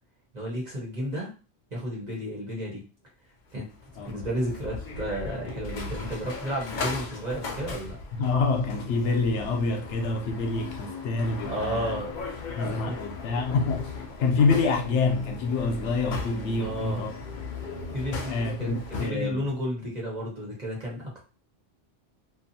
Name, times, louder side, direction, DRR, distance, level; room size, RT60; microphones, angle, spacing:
voice 1, 0.3-1.3 1.7-2.8 3.5-3.7 4.1-8.0 11.4-12.1 12.5-13.0 16.6-17.1 17.9-18.7 19.0-21.2, equal, 35° right, 1.2 m, -32 dB
sound 1, 3.5-19.1, left 3 dB, 60° left, 0.5 m, -37 dB
voice 2, 8.1-11.9 12.5-13.9 14.2-17.1 18.3-19.4, left 3 dB, 75° left, 0.9 m, -26 dB
2.6 x 2.4 x 2.6 m
omnidirectional pair, 1.2 m